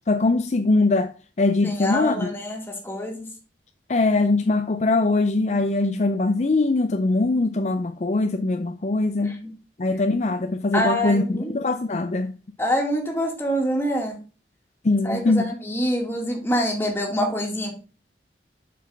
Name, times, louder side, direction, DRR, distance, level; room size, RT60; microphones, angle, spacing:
voice 1, 0.1-2.3 3.9-9.4 9.8-12.3 14.8-15.5, left 2 dB, 40° left, 0.5 m, -22 dB
voice 2, 1.6-3.3 9.2-9.5 10.7-11.5 12.6-14.2 15.0-17.7, equal, 15° left, 1.9 m, -26 dB
7.4 x 5.9 x 3.4 m
head